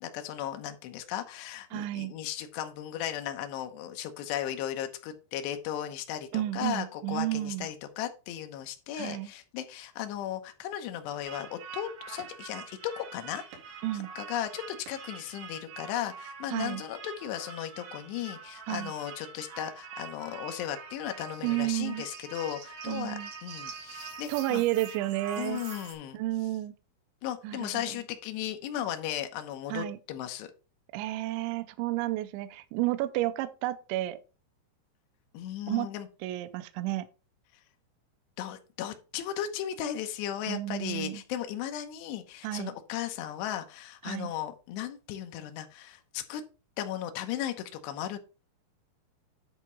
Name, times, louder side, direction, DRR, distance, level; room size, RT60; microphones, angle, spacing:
voice 1, 0.0-24.6 25.4-26.2 27.2-30.5 35.3-36.1 38.4-46.4 46.8-48.2, left 11 dB, 75° left, 2.6 m, -36 dB
voice 2, 1.7-2.1 6.3-7.7 9.0-9.3 13.8-14.1 16.5-16.8 18.7-18.9 21.4-22.0 22.8-23.3 24.3-25.6 26.1-26.7 27.4-28.0 29.7-30.0 30.9-34.2 35.7-35.9 36.2-37.1 40.5-41.2 42.4-42.7 44.0-44.3, right 16 dB, 90° right, 2.6 m, -31 dB
sound 1, 11.2-25.9, right 6 dB, 60° right, 4.2 m, -45 dB
10.5 x 3.6 x 5.5 m
omnidirectional pair, 6.0 m